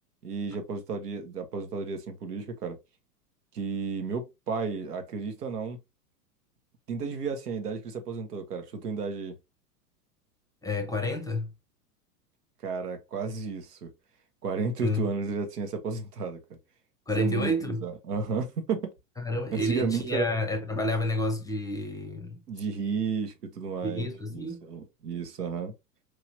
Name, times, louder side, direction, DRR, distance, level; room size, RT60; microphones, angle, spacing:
voice 1, 0.2-2.8 3.5-5.8 6.9-9.4 12.6-13.9 14.4-16.4 17.2-18.9 19.5-20.3 22.5-25.7, right 5 dB, 70° right, 1.3 m, -32 dB
voice 2, 10.6-11.5 14.8-15.1 17.1-17.9 19.2-22.4 23.8-24.6, left 1 dB, 5° left, 0.8 m, -29 dB
4.7 x 3.0 x 2.8 m
figure-of-eight pair, 95°, 48 cm